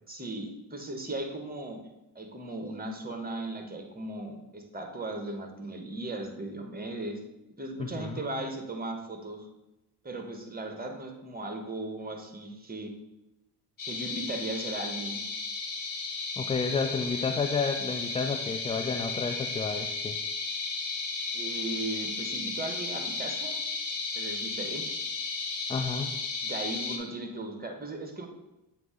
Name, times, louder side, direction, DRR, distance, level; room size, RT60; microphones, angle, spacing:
voice 1, 0.1-1.8 2.1-7.2 7.6-9.5 10.0-12.9 13.9-15.2 21.3-23.6 24.1-24.9 26.4-28.3, right 2 dB, 20° right, 4 dB, 1.4 m, -37 dB
voice 2, 7.8-8.4 16.4-20.2 25.7-26.2, left 4 dB, 15° left, 5 dB, 0.3 m, -31 dB
sound 1, 13.8-27.0, left 4 dB, 40° left, 1.4 m, -34 dB
7.7 x 2.9 x 5.0 m, 0.98 s
hypercardioid pair, 55°, 49 cm